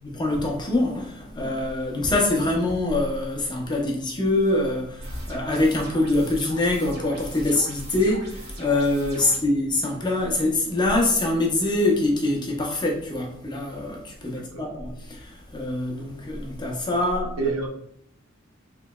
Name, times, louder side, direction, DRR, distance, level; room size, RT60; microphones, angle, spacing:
voice 1, 0.0-17.3, left 2 dB, 20° left, 0.7 m, -24 dB
sound 1, 5.0-9.4, equal, 50° right, 1.4 m, -39 dB
voice 2, 14.3-14.7 17.4-17.7, right 4 dB, 85° right, 0.7 m, -29 dB
3.9 x 3.0 x 2.2 m
head